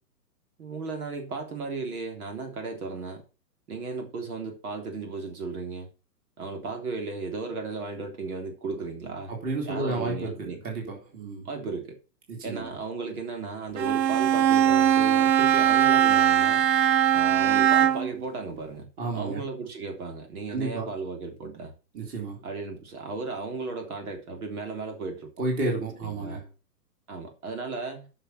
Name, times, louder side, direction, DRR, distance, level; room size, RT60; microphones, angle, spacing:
voice 1, 0.6-3.2 3.7-5.9 6.4-9.3 9.7-10.6 11.4-12.0 12.4-16.6 17.1-21.7 22.4-25.3 26.0-26.4 27.1-28.1, right 4 dB, 60° right, 4 dB, 3.6 m, -35 dB
voice 2, 9.3-11.5 12.5-12.7 19.0-19.4 20.5-20.9 21.9-22.4 25.4-26.4, right 2 dB, 20° right, 0 dB, 3.0 m, -31 dB
Bowed string instrument, 13.8-18.2, right 10 dB, 85° right, 0.7 m, -21 dB
9.9 x 6.0 x 6.1 m, 0.33 s
hypercardioid pair, 145°, 49 cm